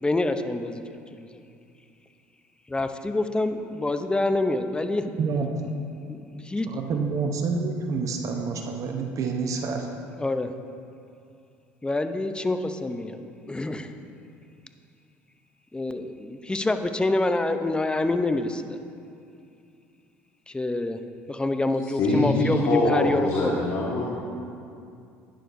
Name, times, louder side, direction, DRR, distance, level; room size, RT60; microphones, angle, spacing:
voice 1, 0.0-0.8 1.1-1.3 2.7-5.0 6.1-6.2 6.4-6.7 10.2-10.5 11.8-13.9 15.7-18.8 20.5-21.0 21.3-23.6, left 2 dB, 15° left, 8 dB, 0.6 m, -26 dB
voice 2, 5.2-5.5 6.7-9.9, right 4 dB, 50° right, 3 dB, 0.9 m, -28 dB
voice 3, 22.0-24.0, left 2 dB, 55° left, -4 dB, 1.5 m, -23 dB
11.5 x 9.9 x 2.7 m, 2.4 s
hypercardioid pair, 70°, 7 cm